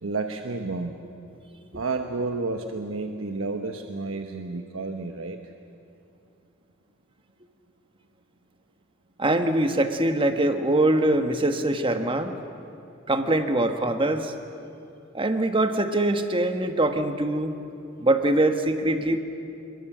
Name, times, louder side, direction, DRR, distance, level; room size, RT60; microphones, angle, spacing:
voice 1, 0.0-1.0 1.7-5.4, right 3 dB, 80° right, 5 dB, 1.2 m, -31 dB
voice 2, 9.2-12.3 13.1-14.3 15.1-17.5 18.0-19.2, right 1 dB, 25° right, 7 dB, 1.5 m, -23 dB
26.5 x 22.5 x 7.4 m, 2.7 s
head